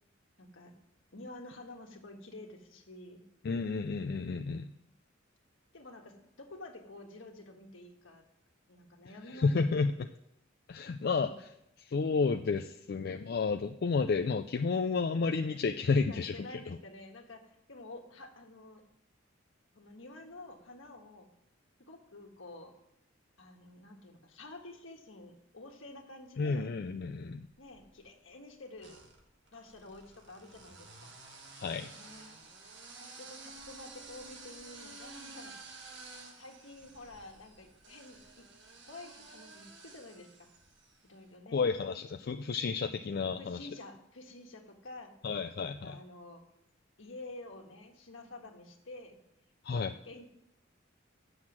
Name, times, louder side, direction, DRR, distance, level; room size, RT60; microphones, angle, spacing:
voice 1, 0.4-0.7 1.1-3.2 5.7-8.2 8.7-9.8 11.1-11.4 15.9-18.8 19.7-21.3 21.8-22.7 23.4-26.7 27.6-29.0 29.5-31.1 31.9-32.3 33.0-35.5 36.3-38.5 38.9-40.5 41.0-41.6 43.4-45.1 45.6-46.4 47.0-49.2 49.8-50.3, left 2 dB, 75° left, 3 dB, 1.5 m, -50 dB
voice 2, 3.4-4.7 9.3-9.9 10.7-11.3 11.8-16.3 26.4-27.5 31.6-31.9 41.5-43.7 45.2-46.0 49.6-49.9, left 4 dB, 50° left, 7 dB, 0.4 m, -31 dB
sound 1, 27.4-28.1 28.8-41.1, right 3 dB, 60° right, 1.4 m, -52 dB
7.9 x 6.3 x 7.3 m, 0.80 s
head